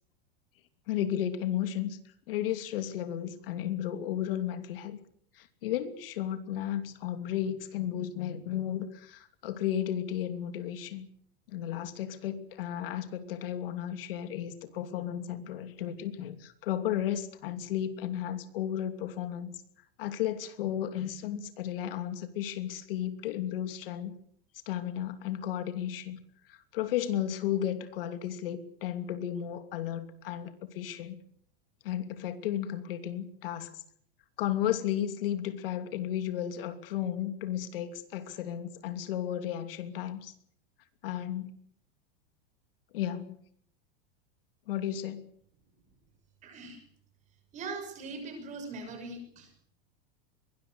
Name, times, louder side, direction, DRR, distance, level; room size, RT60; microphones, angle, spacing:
voice 1, 0.9-2.0 2.3-5.0 5.3-11.1 11.5-19.5 20.0-24.1 24.7-26.2 26.5-31.2 31.8-33.8 34.4-40.3 41.0-41.5 42.9-43.4 44.7-45.2, left 11 dB, 65° left, 9 dB, 2.9 m, -34 dB
voice 2, 46.4-46.8 47.5-49.6, right 3 dB, 25° right, 7 dB, 6.5 m, -41 dB
23.0 x 20.0 x 8.0 m, 0.64 s
supercardioid pair, 170°, 30 cm